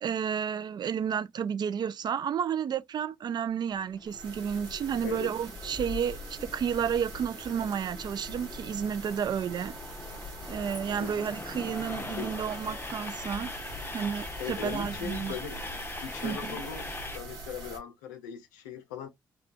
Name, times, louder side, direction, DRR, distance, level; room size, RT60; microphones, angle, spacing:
voice 1, 0.0-6.2 6.5-9.7 10.5-13.5 13.9-15.3 16.2-16.6, right 8 dB, 50° right, 0.4 m, -31 dB
Train, 3.7-17.2, left 3 dB, 20° left, 0.6 m, -42 dB
sound 1, 4.1-17.8, right 2 dB, 80° right, 1.6 m, -44 dB
voice 2, 5.0-5.3 11.0-11.2 12.2-12.5 14.4-15.6 16.0-19.1, left 7 dB, 85° left, 0.6 m, -39 dB
3.4 x 2.4 x 2.4 m
hypercardioid pair, 45°, 9 cm